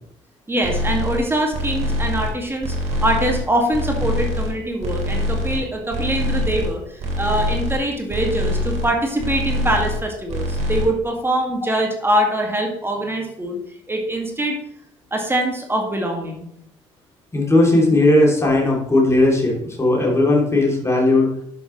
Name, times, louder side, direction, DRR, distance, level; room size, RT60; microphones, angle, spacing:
voice 1, 0.5-13.6 13.9-14.6 15.1-16.5, right 1 dB, 15° right, 2 dB, 2.1 m, -23 dB
sound 1, 0.6-1.2 1.5-2.3 2.6-3.4 3.7-4.5 4.8-5.6 5.9-6.7 7.0-7.8 8.1-8.9 9.2-10.0 10.3-10.8, left 1 dB, 45° right, 2.9 m, -24 dB
voice 2, 17.3-21.3, left 2 dB, 15° left, -2 dB, 2.9 m, -17 dB
11.0 x 6.5 x 3.2 m, 0.73 s
figure-of-eight pair, 50°, 16 cm